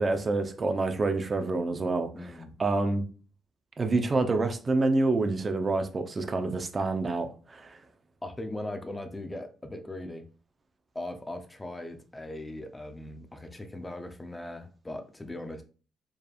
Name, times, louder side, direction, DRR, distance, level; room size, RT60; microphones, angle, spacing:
voice 1, 0.0-2.3 2.6-3.0 3.8-7.8, right 3 dB, 35° right, 0.7 m, -27 dB
voice 2, 2.1-2.5 8.2-10.3 10.9-15.6, left 1 dB, 15° left, 0.7 m, -39 dB
4.7 x 3.3 x 2.4 m
cardioid pair, 90°, 0 cm